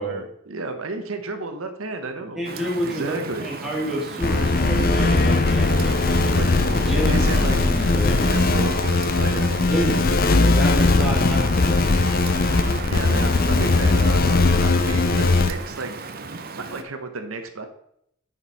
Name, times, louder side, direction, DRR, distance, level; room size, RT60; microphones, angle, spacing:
voice 1, 0.0-2.4 2.8-3.5 4.3-4.5 5.7-6.0 6.3-6.6 7.1-7.6 8.3-9.9 11.0-11.1 12.9-16.2 16.6-17.7, right 2 dB, 70° right, 7 dB, 1.1 m, -32 dB
voice 2, 2.4-6.4 6.7-8.4 9.4-10.0 10.3-11.6, right 1 dB, ahead, -4 dB, 2.1 m, -29 dB
Rain, 2.4-16.8, right 4 dB, 45° right, 0.6 m, -36 dB
sound 1, 4.2-15.5, left 3 dB, 40° left, 0.5 m, -19 dB
9.0 x 5.4 x 4.2 m, 0.74 s
head